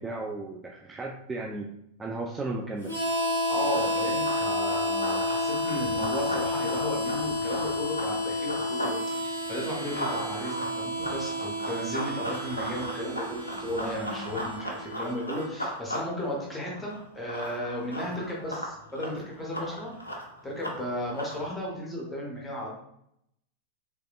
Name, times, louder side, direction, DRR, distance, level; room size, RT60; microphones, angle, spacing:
voice 1, 0.0-1.7 2.0-2.9, right 2 dB, 15° right, 0 dB, 0.4 m, -34 dB
Harmonica, 2.8-15.5, left 1 dB, 90° right, 1.0 m, -31 dB
Run, 3.5-9.0 9.3-21.5, equal, 85° left, 0.6 m, -37 dB
voice 2, 3.5-19.9 20.4-22.7, equal, 10° left, -3 dB, 1.0 m, -34 dB
3.3 x 3.2 x 2.4 m, 0.76 s
figure-of-eight pair, 90°, 0 cm